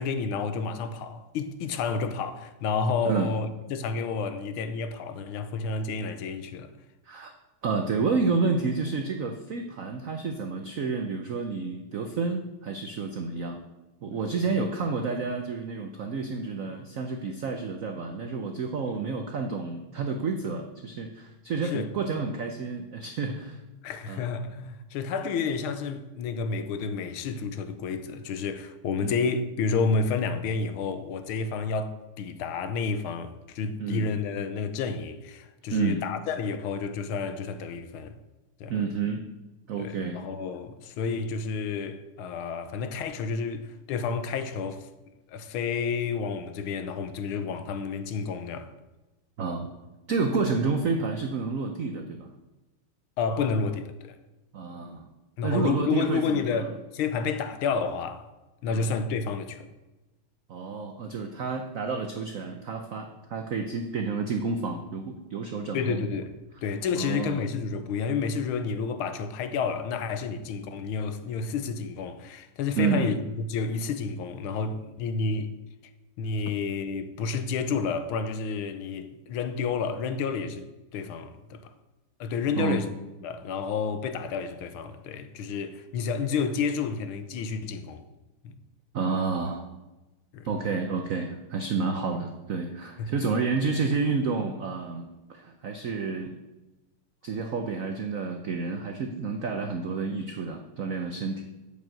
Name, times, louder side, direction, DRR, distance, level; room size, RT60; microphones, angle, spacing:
voice 1, 0.0-6.7 21.6-21.9 23.8-38.2 38.6-38.7 39.8-44.9 45.3-48.7 53.2-54.2 55.4-58.3 58.6-59.7 65.7-66.4 66.6-75.5 76.2-80.6 80.9-81.7 82.2-82.9 83.2-88.0 88.4-88.6 90.3-90.5 93.0-93.1, left 5 dB, 80° left, 1.6 m, -30 dB
voice 2, 7.6-13.6 14.0-23.6 24.1-24.3 29.0-29.2 33.8-34.1 35.7-36.0 38.7-39.2 39.7-40.2 49.4-49.7 50.1-52.3 54.5-55.1 55.4-56.8 58.7-58.9 60.5-66.0 66.9-67.4 72.8-73.2 82.6-82.8 88.9-89.6 90.4-96.4 97.2-101.4, right 4 dB, 85° right, 0.7 m, -30 dB
8.4 x 5.3 x 7.7 m
omnidirectional pair, 2.4 m